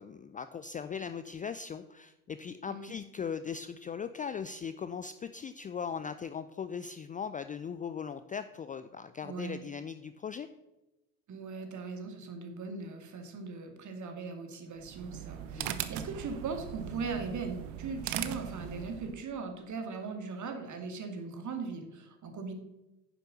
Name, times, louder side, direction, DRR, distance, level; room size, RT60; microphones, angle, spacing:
voice 1, 0.0-10.5 15.6-15.8, left 6 dB, 20° left, 12 dB, 0.4 m, -39 dB
voice 2, 9.2-9.6 11.3-22.5, right 4 dB, 40° right, 5 dB, 2.4 m, -39 dB
sound 1, 14.8-19.2, right 11 dB, 60° right, 1.0 m, -39 dB
10.0 x 7.0 x 6.6 m, 0.97 s
figure-of-eight pair, 65°, 46 cm